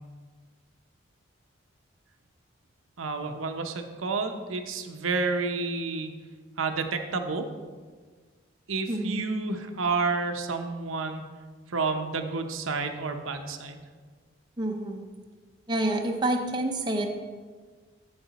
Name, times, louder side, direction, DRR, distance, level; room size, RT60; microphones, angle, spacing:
voice 1, 3.0-6.1 6.6-7.5 8.7-11.2 11.7-13.8, right 4 dB, 85° right, 5 dB, 0.8 m, -30 dB
voice 2, 8.9-9.2 14.6-15.0 15.7-17.1, right 1 dB, 20° right, 2 dB, 0.7 m, -28 dB
7.9 x 7.8 x 4.1 m, 1.5 s
head